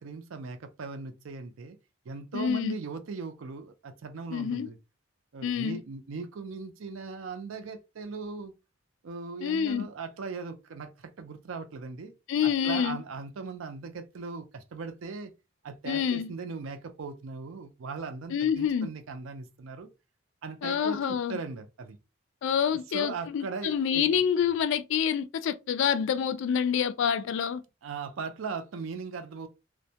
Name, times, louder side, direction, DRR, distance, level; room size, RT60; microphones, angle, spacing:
voice 1, 0.0-1.8 2.1-4.8 5.3-8.5 9.0-12.1 12.4-15.3 15.6-19.9 20.4-22.0 22.7-24.2 27.8-29.5, right 4 dB, 70° right, 0.4 m, -39 dB
voice 2, 2.3-2.8 4.3-4.7 5.4-5.8 9.4-9.9 12.3-13.0 15.9-16.3 18.3-18.9 20.6-21.4 22.4-27.6, left 8 dB, 65° left, 0.3 m, -27 dB
2.1 x 2.1 x 2.7 m
head